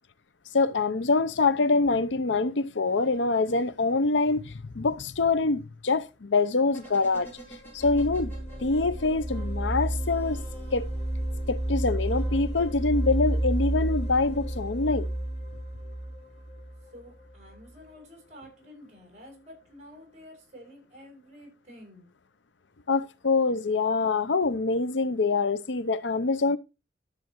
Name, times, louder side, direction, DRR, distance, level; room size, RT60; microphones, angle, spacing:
voice 1, 0.5-7.3 7.7-8.3 8.6-10.4 10.7-10.9 11.5-15.1 22.9-26.6, left 3 dB, 90° left, 0.7 m, -25 dB
sound 1, 6.7-11.1 11.9-13.8 14.1-14.2, right 1 dB, 10° left, 3.3 m, -50 dB
sound 2, 7.8-17.6, right 1 dB, 35° left, 4.9 m, -31 dB
voice 2, 16.9-22.1, equal, 40° right, 6.5 m, -50 dB
12.5 x 7.5 x 3.0 m
head